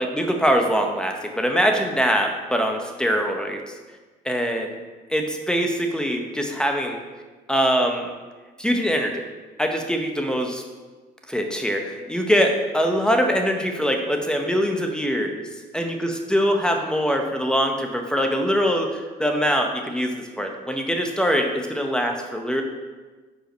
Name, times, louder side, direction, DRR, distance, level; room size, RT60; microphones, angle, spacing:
voice 1, 0.0-3.7 4.2-4.7 5.1-7.0 7.5-8.1 8.6-9.2 9.6-10.6 11.3-15.5 15.7-22.6, equal, 5° left, 3 dB, 0.7 m, -23 dB
5.2 x 4.8 x 5.1 m, 1.3 s
cardioid pair, 110°, 17 cm